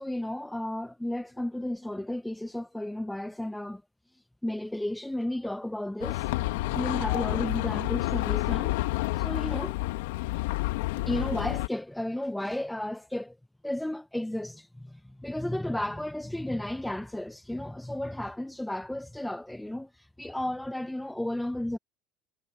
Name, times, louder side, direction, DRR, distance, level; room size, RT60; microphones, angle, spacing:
voice 1, 0.0-3.8 4.1-8.8 9.1-9.8 11.0-13.4 13.6-21.8, left 1 dB, 5° left, 1.1 m, -33 dB
sound 1, 6.0-11.7, left 19 dB, 80° left, 2.0 m, -29 dB
hypercardioid pair, 80°, 0 cm